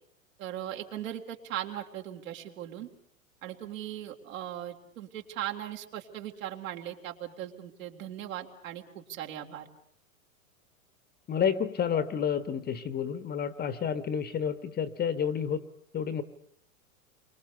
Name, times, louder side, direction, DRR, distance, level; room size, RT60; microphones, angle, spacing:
voice 1, 0.4-2.9 3.4-9.7, right 11 dB, 65° right, 2 dB, 3.9 m, -39 dB
voice 2, 11.3-15.6 15.9-16.2, left 7 dB, 20° left, 13 dB, 1.2 m, -30 dB
29.5 x 24.0 x 6.8 m, 0.63 s
hypercardioid pair, 115°, 42 cm